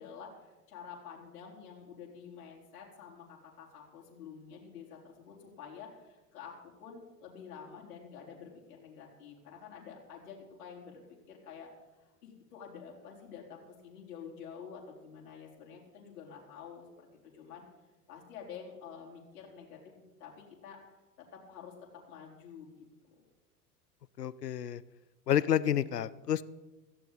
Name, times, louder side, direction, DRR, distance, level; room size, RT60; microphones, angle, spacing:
voice 1, 0.0-11.7 12.0-17.1 17.3-17.6 18.1-20.8 21.2-23.2, left 6 dB, 60° left, -2 dB, 4.4 m, -49 dB
voice 2, 24.2-24.8 25.3-26.4, left 10 dB, 75° left, 19 dB, 0.8 m, -29 dB
16.5 x 15.5 x 4.1 m, 1.1 s
figure-of-eight pair, 85°, 48 cm